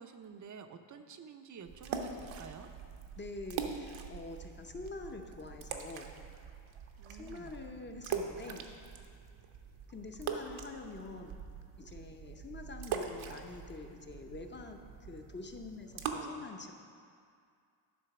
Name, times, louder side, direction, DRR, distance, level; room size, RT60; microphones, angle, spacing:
voice 1, 0.0-2.7 7.0-7.6 16.1-16.5, right 6 dB, 40° right, 8 dB, 0.6 m, -50 dB
sound 1, 1.7-16.1, right 7 dB, 75° right, 0.9 m, -43 dB
voice 2, 3.2-6.1 7.1-8.7 9.9-11.4 11.8-16.7, left 3 dB, 25° left, 5 dB, 0.7 m, -46 dB
11.0 x 3.9 x 5.9 m, 2.3 s
cardioid pair, 95°, 49 cm